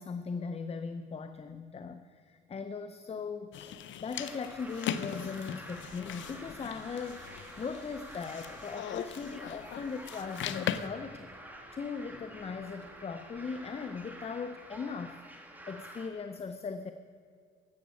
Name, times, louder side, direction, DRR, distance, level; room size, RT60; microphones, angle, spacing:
voice 1, 0.0-7.3 7.6-11.3 11.7-15.2 15.7-16.9, left 5 dB, 30° left, 9 dB, 0.6 m, -39 dB
sound 1, 3.5-10.9, left 9 dB, 70° left, 0.6 m, -39 dB
sound 2, 4.1-16.1, right 1 dB, 10° right, 1.9 m, -49 dB
sound 3, 5.7-14.2, right 1 dB, 35° right, 4.1 m, -59 dB
12.5 x 8.1 x 8.3 m, 2.1 s
cardioid pair, 90°, 20 cm